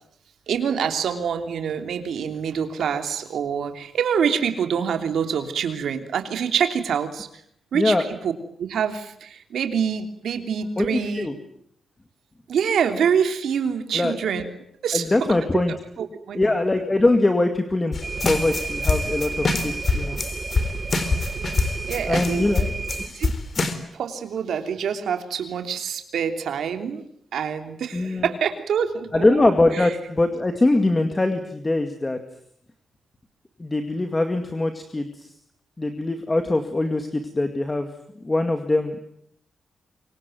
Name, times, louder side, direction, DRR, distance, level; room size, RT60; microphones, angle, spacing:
voice 1, 0.5-7.3 7.7-8.3 8.6-11.3 12.5-14.4 14.8-15.1 15.7-16.6 21.9-22.5 23.1-23.3 23.9-27.0 27.3-29.5 29.7-29.9, right 7 dB, 85° right, 6 dB, 3.1 m, -26 dB
voice 2, 10.8-11.3 13.9-14.2 14.9-15.7 16.3-18.0 18.2-20.2 22.1-22.7 27.9-28.3 29.1-32.2 33.6-35.3 35.8-37.9 38.2-39.0, left 2 dB, 15° left, 6 dB, 2.1 m, -22 dB
sound 1, 17.9-23.7, left 3 dB, 35° left, 3.8 m, -25 dB
sound 2, 18.0-23.1, right 4 dB, 30° right, 1.8 m, -31 dB
26.5 x 24.0 x 9.2 m, 0.71 s
wide cardioid pair, 155°, 0 cm